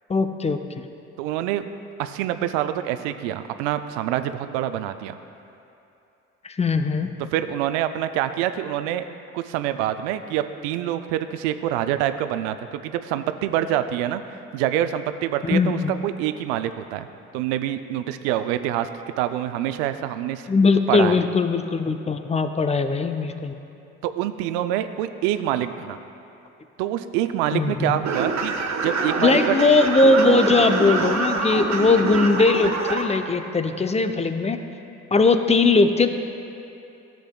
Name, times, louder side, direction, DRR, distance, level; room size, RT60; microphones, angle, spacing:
voice 1, 0.1-0.6 6.4-7.1 15.4-16.0 20.5-23.5 27.5-28.0 29.2-34.6 35.1-36.1, left 3 dB, 20° left, 7 dB, 0.6 m, -20 dB
voice 2, 1.2-1.6 2.0-5.2 7.3-9.0 9.3-14.2 14.5-17.1 17.3-18.9 19.2-20.5 20.9-21.2 24.0-26.0 26.8-29.6, right 12 dB, 80° right, 10 dB, 0.5 m, -26 dB
sound 1, 28.0-33.0, right 4 dB, 50° right, 1.2 m, -25 dB
14.0 x 7.6 x 2.3 m, 2.7 s
hypercardioid pair, 50°, 34 cm